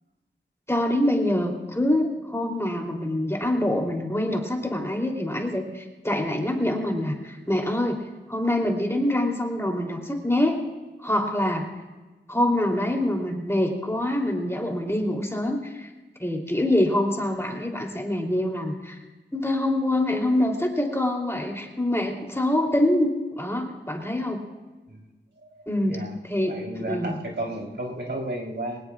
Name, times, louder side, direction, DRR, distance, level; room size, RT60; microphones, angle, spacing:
voice 1, 0.7-8.0 8.3-10.6 11.0-11.6 12.3-15.9 16.2-19.0 19.3-23.1 23.4-24.4 25.7-26.0 26.2-27.2, left 1 dB, 15° left, 0 dB, 3.2 m, -25 dB
voice 2, 25.4-26.1 26.5-28.8, right 1 dB, 70° right, -2 dB, 3.8 m, -33 dB
22.5 x 19.5 x 2.4 m, 1.2 s
wide cardioid pair, 60°, 19 cm